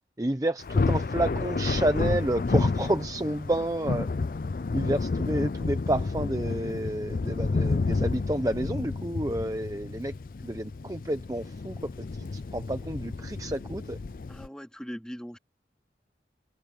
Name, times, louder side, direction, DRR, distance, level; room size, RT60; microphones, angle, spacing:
voice 1, 0.2-4.1 4.7-10.1 10.4-14.0, right 1 dB, 20° right, 0.8 m, -30 dB
Thunder, 0.6-14.5, left 3 dB, 50° left, 0.4 m, -30 dB
voice 2, 14.3-15.4, equal, 5° left, 3.0 m, -40 dB
head